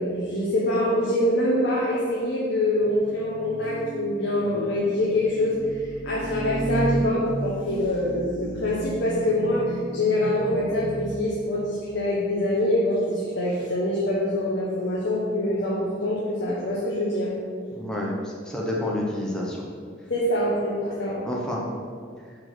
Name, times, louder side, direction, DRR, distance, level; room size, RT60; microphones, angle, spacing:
voice 1, 0.0-5.5 6.0-17.3 20.1-21.2, left 1 dB, 60° left, -6 dB, 1.0 m, -25 dB
sound 1, 2.8-11.3, right 2 dB, 40° right, 1.0 m, -33 dB
voice 2, 17.7-19.7 21.2-21.6, left 1 dB, 5° left, -3 dB, 0.7 m, -29 dB
4.9 x 4.7 x 5.9 m, 2.1 s
head